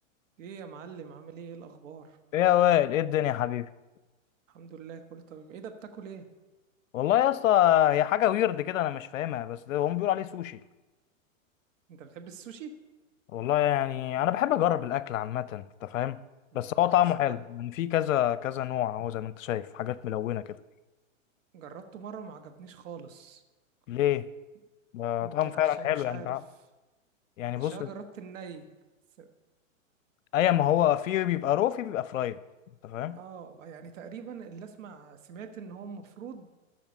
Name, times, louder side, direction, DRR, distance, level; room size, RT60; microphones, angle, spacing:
voice 1, 0.4-2.2 4.5-6.3 11.9-12.7 16.5-16.8 21.5-23.4 25.2-26.3 27.6-28.6 29.2-29.3 33.1-36.5, right 6 dB, 70° right, 1.3 m, -44 dB
voice 2, 2.3-3.7 6.9-10.6 13.3-16.2 16.5-20.6 23.9-24.3 24.9-26.4 27.4-27.9 30.3-32.4 32.8-33.2, left 12 dB, 75° left, 0.6 m, -26 dB
14.0 x 5.9 x 6.1 m
hypercardioid pair, 125°, 40 cm